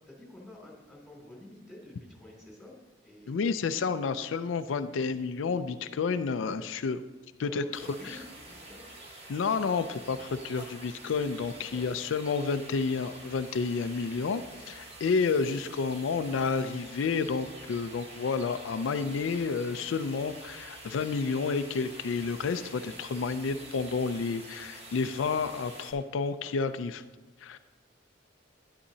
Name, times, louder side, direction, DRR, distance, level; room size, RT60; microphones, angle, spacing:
voice 1, 0.1-2.7 3.0-3.6 7.4-8.9 11.5-11.9, left 1 dB, ahead, -4 dB, 2.7 m, -49 dB
voice 2, 3.3-7.0 7.4-7.6 8.0-8.2 9.3-27.0 27.4-27.6, left 5 dB, 85° left, 10 dB, 0.4 m, -30 dB
sound 1, 7.7-25.9, right 2 dB, 30° right, 1.3 m, -47 dB
11.5 x 9.7 x 2.7 m, 1.2 s
head